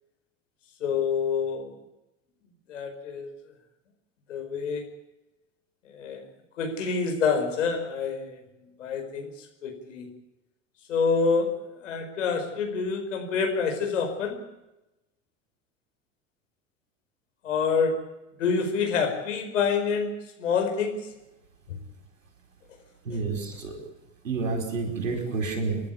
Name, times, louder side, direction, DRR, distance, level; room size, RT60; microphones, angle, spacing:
voice 1, 0.8-1.7 2.7-3.3 4.3-4.9 5.8-6.2 6.6-10.1 10.9-14.5 17.4-18.0 18.4-21.1, left 5 dB, 70° left, 4 dB, 5.1 m, -27 dB
voice 2, 23.0-23.8 24.2-25.8, right 4 dB, 75° right, 5 dB, 5.1 m, -29 dB
30.0 x 11.0 x 8.4 m, 0.97 s
figure-of-eight pair, 75°, 39 cm